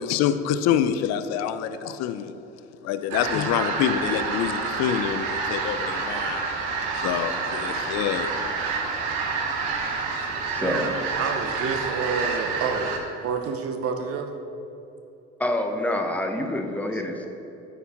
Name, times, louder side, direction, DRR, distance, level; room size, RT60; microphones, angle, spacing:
voice 1, 0.0-2.3 2.8-6.4 6.9-8.4, left 9 dB, 60° left, 11 dB, 0.5 m, -26 dB
sound 1, 3.1-13.0, right 4 dB, 80° right, 1.1 m, -28 dB
voice 2, 9.7-10.9 15.4-17.3, left 1 dB, 5° left, 3 dB, 0.8 m, -28 dB
voice 3, 10.5-10.9 11.2-12.9 13.2-14.3 16.9-17.0, right 5 dB, 50° right, 6 dB, 0.8 m, -29 dB
12.5 x 4.6 x 3.5 m, 3.0 s
cardioid pair, 105°, 30 cm